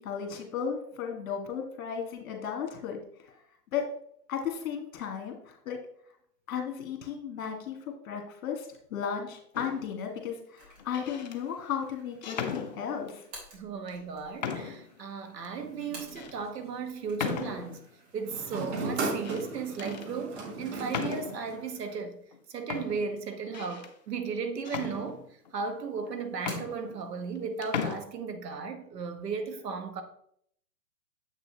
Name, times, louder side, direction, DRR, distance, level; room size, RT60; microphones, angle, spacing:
voice 1, 0.0-3.0 3.7-3.8 4.3-5.8 6.5-7.8 8.0-13.2, left 7 dB, 55° left, 1.7 m, -35 dB
sound 1, 9.5-10.0 10.8-11.4 12.2-13.2 13.9-14.0 14.4-14.9 15.4-15.5 16.2-16.3 17.2-17.8 19.0-19.5 19.8-20.1 20.9-21.5 22.3-22.4 22.7-23.9 24.6-25.5 26.1-26.2 26.4-27.4 27.6-28.0, left 6 dB, 30° left, 0.4 m, -36 dB
sound 2, 10.6-16.6 16.9-22.4 22.8-22.9 23.7-24.4 24.7-25.5 25.8-26.9, right 1 dB, 30° right, 2.8 m, -54 dB
voice 2, 13.5-17.8 18.1-22.2 22.5-25.2 25.5-30.0, right 5 dB, 70° right, 1.3 m, -35 dB
sound 3, 15.5-16.8 18.2-21.8, right 3 dB, 45° right, 1.6 m, -37 dB
7.3 x 6.1 x 2.8 m
hypercardioid pair, 125°, 50 cm